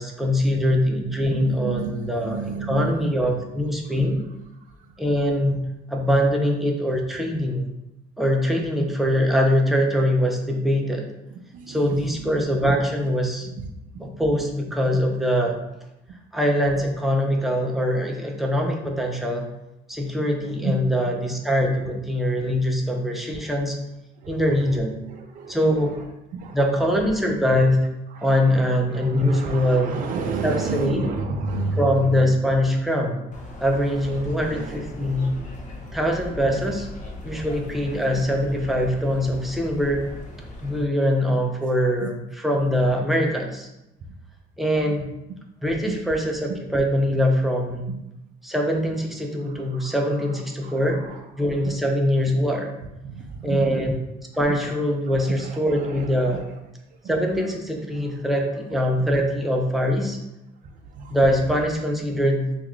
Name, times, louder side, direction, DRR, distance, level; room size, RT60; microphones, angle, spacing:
voice 1, 0.0-4.2 5.0-7.7 8.2-11.1 11.7-13.5 14.0-15.6 16.3-19.5 19.9-23.8 24.3-25.0 25.5-26.0 26.5-27.9 28.2-30.0 30.4-31.0 31.8-33.2 33.6-35.3 35.9-36.9 37.2-40.0 40.6-43.7 44.6-45.1 45.6-47.9 48.4-51.0 51.4-52.7 53.4-53.9 54.4-56.4 57.1-60.2 61.1-62.6, equal, ahead, 0 dB, 0.5 m, -23 dB
voice 2, 1.3-3.1 4.0-4.1 11.5-12.4 20.6-20.8 24.2-24.8 25.1-25.7 26.3-26.6 28.1-28.3 28.9-32.0 34.4-35.5 42.0-42.1 44.8-44.9 45.8-45.9 49.8-49.9 50.6-51.2 53.0-53.6 54.5-54.6 55.1-56.4 57.0-57.1 61.0-61.2, right 4 dB, 50° right, 3 dB, 0.5 m, -32 dB
sound 1, 33.3-40.8, left 2 dB, 45° left, 0.6 m, -38 dB
3.4 x 2.4 x 3.0 m, 0.89 s
cardioid pair, 110°, 17 cm